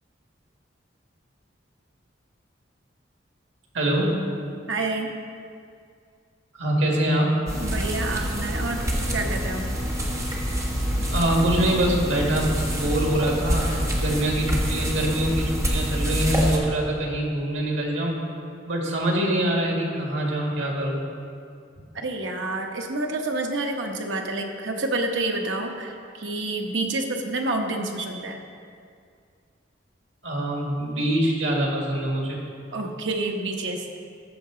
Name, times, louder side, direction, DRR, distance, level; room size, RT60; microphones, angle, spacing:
voice 1, 3.7-4.2 6.5-7.3 11.1-13.7 14.0-18.2 18.7-21.0 30.2-32.4, right 1 dB, 90° right, -1 dB, 1.9 m, -24 dB
voice 2, 4.7-5.1 7.6-8.8 9.1-9.6 21.9-28.4 32.7-33.8, right 2 dB, 70° right, 2 dB, 1.0 m, -28 dB
sound 1, 7.5-16.6, equal, 15° right, 1.2 m, -26 dB
14.0 x 6.6 x 3.8 m, 2.3 s
head